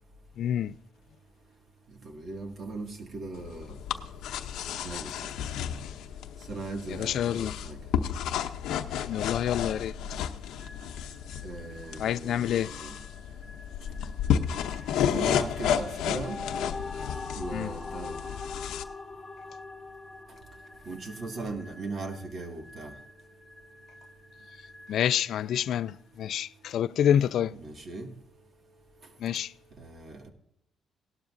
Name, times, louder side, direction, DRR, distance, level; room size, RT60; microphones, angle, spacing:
voice 1, 0.4-0.7 6.9-7.5 9.0-9.9 12.0-12.7 17.5-17.7 24.9-27.5 29.2-29.5, left 10 dB, 70° left, 0.3 m, -27 dB
voice 2, 2.0-3.7 4.8-5.1 6.5-7.8 11.4-12.9 15.1-16.4 17.4-18.1 20.9-22.9 27.5-28.1 29.8-30.2, right 3 dB, 50° right, 2.0 m, -38 dB
sound 1, 3.3-18.8, left 9 dB, 85° left, 0.7 m, -32 dB
sound 2, 10.6-26.2, left 1 dB, ahead, 5.1 m, -54 dB
sound 3, 15.9-21.3, left 4 dB, 25° left, 1.3 m, -41 dB
18.0 x 12.0 x 2.6 m
cardioid pair, 105°, 0 cm